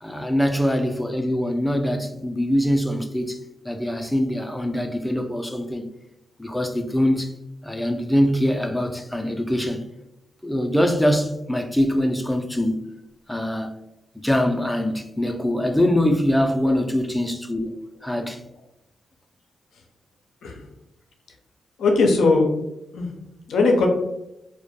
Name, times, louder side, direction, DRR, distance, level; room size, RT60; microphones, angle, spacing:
voice 1, 0.0-3.4 3.6-5.9 6.4-7.3 7.6-9.8 10.4-12.8 13.3-13.7 14.2-17.7 18.0-18.4, equal, 5° left, 0.4 m, -23 dB
voice 2, 21.8-22.5 22.9-23.1 23.5-23.9, left 3 dB, 75° left, 0.4 m, -19 dB
2.2 x 2.1 x 2.7 m
supercardioid pair, 50°, 0 cm